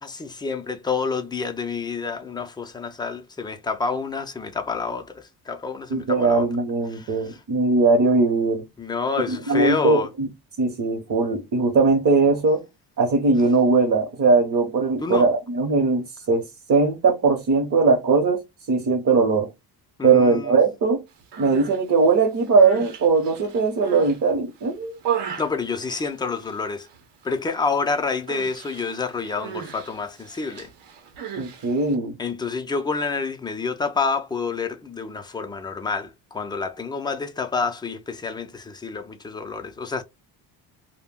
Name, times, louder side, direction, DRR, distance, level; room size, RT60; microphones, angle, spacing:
voice 1, 0.0-6.5 6.9-7.4 8.8-10.1 15.0-15.3 20.0-20.6 25.4-26.9 27.2-30.7 32.2-40.0, left 4 dB, 10° left, 0.4 m, -28 dB
voice 2, 5.9-8.6 9.3-10.3 10.6-12.6 13.0-18.4 18.7-19.5 20.0-21.0 21.4-25.0 31.4-32.2, right 4 dB, 45° right, 0.8 m, -20 dB
Human voice, 21.2-21.8 22.4-24.2 24.6-26.6 26.9-27.3 27.6-27.8 28.3-31.9, right 8 dB, 75° right, 0.9 m, -35 dB
2.1 x 2.1 x 3.5 m
cardioid pair, 105°, 42 cm